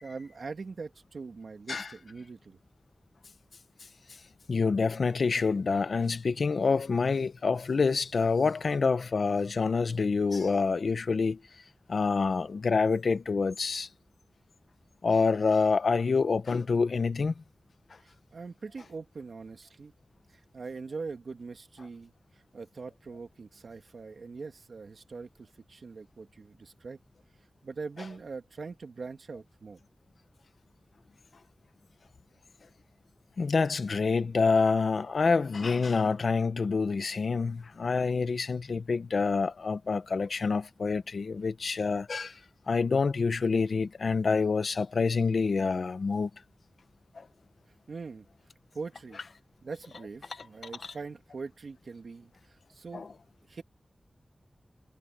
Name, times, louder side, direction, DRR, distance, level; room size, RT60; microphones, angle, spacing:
voice 1, 0.0-2.6 18.0-19.9 20.3-27.0 27.6-29.8 47.9-48.3 48.7-49.2 49.6-53.1 53.5-53.6, right 4 dB, 85° right, 2.3 m, -42 dB
voice 2, 4.5-11.4 11.9-13.9 15.0-17.4 33.4-42.4 42.7-46.3 47.2-47.3 52.9-53.1, left 4 dB, 80° left, 1.1 m, -27 dB
wide cardioid pair, 70°, 0 cm